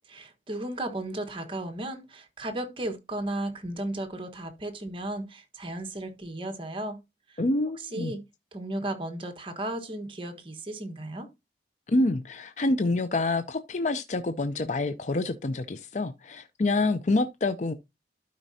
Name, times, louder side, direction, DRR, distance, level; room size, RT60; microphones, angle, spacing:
voice 1, 0.1-7.0 7.3-7.4 7.9-8.2 8.5-11.3, right 1 dB, 30° right, 1.3 m, -35 dB
voice 2, 7.4-8.1 11.9-17.7, left 2 dB, 40° left, 0.5 m, -27 dB
12.0 x 5.2 x 2.7 m
head